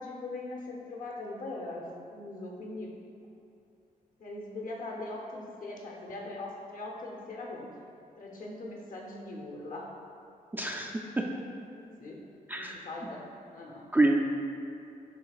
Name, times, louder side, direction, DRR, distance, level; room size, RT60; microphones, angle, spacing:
voice 1, 0.0-1.8 2.1-2.9 4.2-7.7 8.2-9.9 11.8-12.2 12.5-13.2 13.5-13.9, left 2 dB, 60° left, -1 dB, 0.8 m, -40 dB
voice 2, 10.5-11.2 12.5-12.8 13.9-14.1, right 2 dB, 10° right, 0 dB, 0.3 m, -27 dB
6.8 x 2.8 x 2.4 m, 2.6 s
cardioid pair, 75°, 16 cm